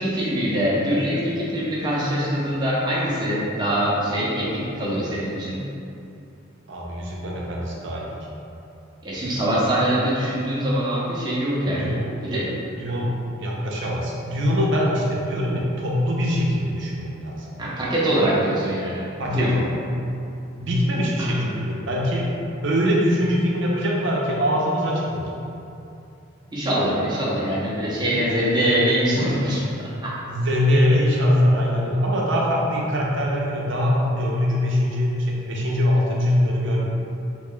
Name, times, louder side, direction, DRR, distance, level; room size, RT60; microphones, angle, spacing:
voice 1, 0.0-5.6 9.0-11.9 12.2-12.5 17.6-19.0 19.3-19.5 21.2-21.3 26.5-30.1, equal, 20° right, -7 dB, 0.7 m, -23 dB
voice 2, 6.7-8.0 11.6-12.0 12.3-12.5 12.8-17.6 19.2-19.7 20.6-22.2 22.6-25.4 30.3-36.8, equal, 65° right, -3 dB, 0.6 m, -22 dB
3.0 x 2.3 x 3.7 m, 2.6 s
head